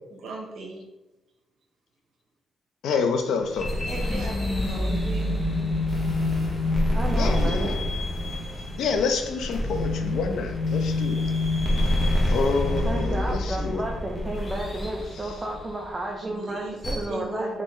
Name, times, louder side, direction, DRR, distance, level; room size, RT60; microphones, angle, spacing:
voice 1, 0.2-0.9 3.8-5.3 16.2-16.8 17.1-17.6, right 2 dB, 75° right, 0 dB, 0.8 m, -36 dB
voice 2, 2.8-3.9 7.1-7.7 8.8-11.2 12.3-13.8, left 5 dB, 85° left, 6 dB, 0.4 m, -27 dB
sound 1, 3.4-16.0 16.8-17.1, left 1 dB, 25° left, 0.6 m, -26 dB
voice 3, 6.9-7.7 12.8-17.6, right 1 dB, 15° right, -1 dB, 0.4 m, -32 dB
3.6 x 2.6 x 3.1 m, 1.0 s
cardioid pair, 155°, 0 cm